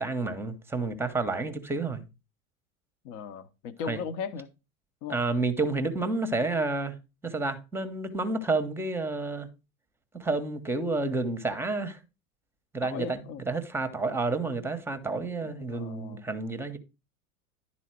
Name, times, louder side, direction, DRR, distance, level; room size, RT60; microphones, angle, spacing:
voice 1, 0.0-2.0 3.9-4.0 5.1-7.0 7.2-9.5 10.1-12.0 12.7-16.8, right 3 dB, 5° right, 0.9 m, -30 dB
voice 2, 3.0-4.5 5.0-5.2 12.8-13.4 15.4-16.3, left 6 dB, 45° left, 0.9 m, -37 dB
11.0 x 4.2 x 4.5 m
figure-of-eight pair, 80°, 45 cm